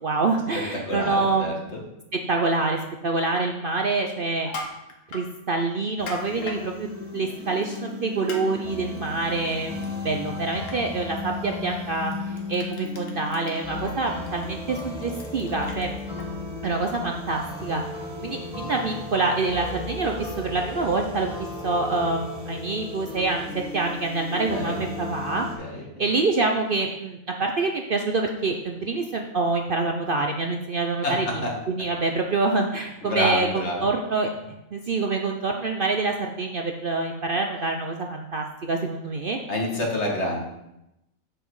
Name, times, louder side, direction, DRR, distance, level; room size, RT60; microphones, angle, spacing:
voice 1, 0.0-1.6 2.1-4.5 5.1-6.9 7.1-15.9 16.6-17.8 18.2-21.3 21.6-25.5 26.0-34.3 34.7-39.4, right 3 dB, 50° right, 3 dB, 0.7 m, -26 dB
voice 2, 0.9-1.8 24.5-24.8 25.6-25.8 31.0-31.5 33.0-33.9 39.5-40.4, left 1 dB, 55° left, -1 dB, 2.1 m, -27 dB
Crushing, 4.3-5.3 5.9-6.6 7.8-7.9 8.3-8.4 8.8-9.9 10.2-10.4 10.7-10.8 11.7-11.8 12.1-16.2, left 2 dB, 70° left, 1.7 m, -39 dB
sound 1, 6.0-25.5, left 2 dB, 5° right, 2.6 m, -35 dB
7.7 x 7.7 x 4.8 m, 0.90 s
omnidirectional pair, 1.5 m